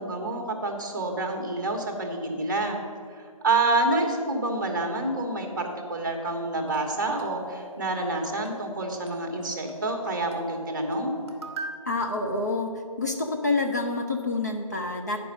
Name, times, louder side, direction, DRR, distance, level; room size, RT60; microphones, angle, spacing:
voice 1, 0.0-2.8 3.2-11.1, right 2 dB, 35° right, 3 dB, 1.2 m, -28 dB
sound 1, 6.6-11.8, right 2 dB, 50° right, 1.3 m, -42 dB
voice 2, 11.9-12.7 13.0-15.2, left 3 dB, 30° left, 1 dB, 0.5 m, -27 dB
9.8 x 5.3 x 6.4 m, 2.3 s
figure-of-eight pair, 160°, 18 cm